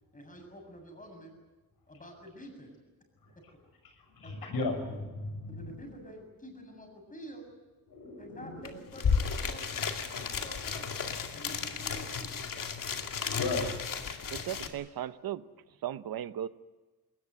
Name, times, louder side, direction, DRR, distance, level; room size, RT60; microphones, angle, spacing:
voice 1, 0.1-1.3 1.9-2.7 4.2-5.0 5.5-7.4 8.2-10.9 11.3-12.3, equal, 20° left, 3 dB, 7.5 m, -48 dB
voice 2, 3.8-5.7 7.9-8.6 11.3-11.5 13.4-13.6, left 3 dB, 90° left, 4 dB, 6.7 m, -36 dB
sound 1, 8.6-8.7 8.9-14.7, left 6 dB, 65° left, 2.3 m, -33 dB
voice 3, 14.3-15.5 15.8-16.5, right 11 dB, 75° right, 14 dB, 0.9 m, -36 dB
21.0 x 20.0 x 9.6 m, 1.2 s
wide cardioid pair, 115°, 35 cm